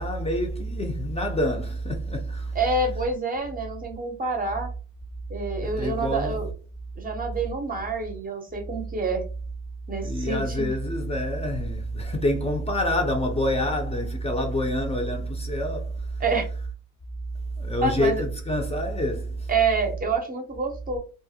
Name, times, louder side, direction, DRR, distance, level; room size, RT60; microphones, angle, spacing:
voice 1, 0.0-2.5 5.6-6.4 10.0-16.2 17.6-19.5, equal, 20° left, 0.5 m, -27 dB
voice 2, 2.5-4.7 5.3-6.5 7.0-9.2 9.9-10.7 16.2-16.5 17.8-18.2 19.5-21.0, right 3 dB, 30° right, 0.6 m, -27 dB
2.3 x 2.0 x 2.7 m
cardioid pair, 90°, 30 cm